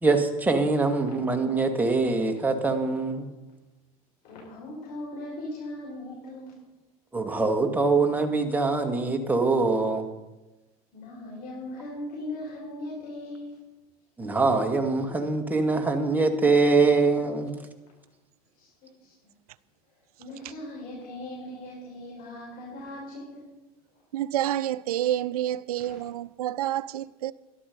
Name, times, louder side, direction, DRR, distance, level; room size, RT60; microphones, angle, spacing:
voice 1, 0.0-3.3 7.1-10.1 14.2-17.6, right 3 dB, 10° right, 2.1 m, -23 dB
voice 2, 4.2-6.6 10.9-13.6 18.5-19.1 20.2-23.5, left 1 dB, 55° left, 5.8 m, -39 dB
voice 3, 24.1-27.3, right 12 dB, 85° right, 0.5 m, -28 dB
13.5 x 12.0 x 5.4 m
hypercardioid pair, 85°, 19 cm